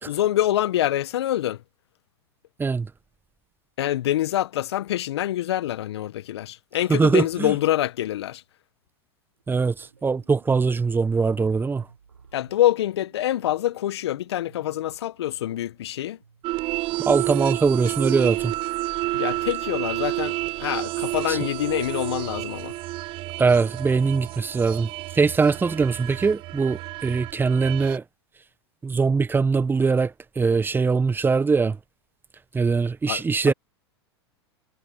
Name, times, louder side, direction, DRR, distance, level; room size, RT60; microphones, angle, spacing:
voice 1, 0.0-1.6 3.8-8.4 12.3-16.2 19.1-22.7 33.1-33.5, left 13 dB, 70° left, 1.6 m, -26 dB
voice 2, 2.6-2.9 6.9-7.5 9.5-11.8 17.0-18.5 21.3-21.4 23.4-24.9 25.1-28.0 28.8-31.8 32.5-33.5, right 4 dB, 15° right, 1.2 m, -22 dB
sound 1, 9.4-16.5, right 6 dB, 90° right, 5.0 m, -55 dB
sound 2, 16.4-28.0, right 19 dB, 40° right, 0.5 m, -30 dB
hypercardioid pair, 95°, 14 cm